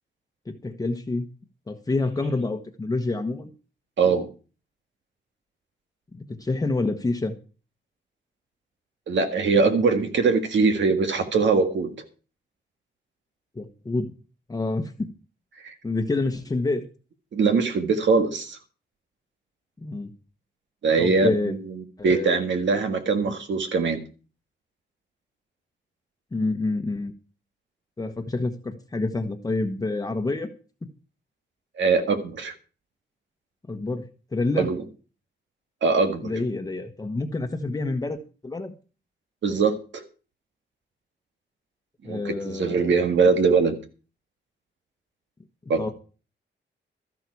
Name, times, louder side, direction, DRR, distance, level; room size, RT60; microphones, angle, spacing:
voice 1, 0.5-1.3 1.7-3.5 6.1-7.3 13.5-14.1 14.5-15.1 15.8-16.9 19.8-20.1 21.0-21.5 22.0-22.4 26.3-27.1 28.0-30.5 30.8-30.9 33.7-34.7 36.2-38.7 42.0-43.0 45.8-45.9, left 2 dB, 20° left, 5 dB, 1.1 m, -28 dB
voice 2, 4.0-4.3 9.1-11.9 17.3-18.6 20.8-21.6 22.0-24.0 31.8-32.5 34.6-34.8 35.8-36.3 39.4-40.0 42.1-43.8 45.7-45.9, right 4 dB, 75° right, 6 dB, 1.8 m, -22 dB
13.5 x 11.5 x 4.7 m, 0.35 s
wide cardioid pair, 165°, 19 cm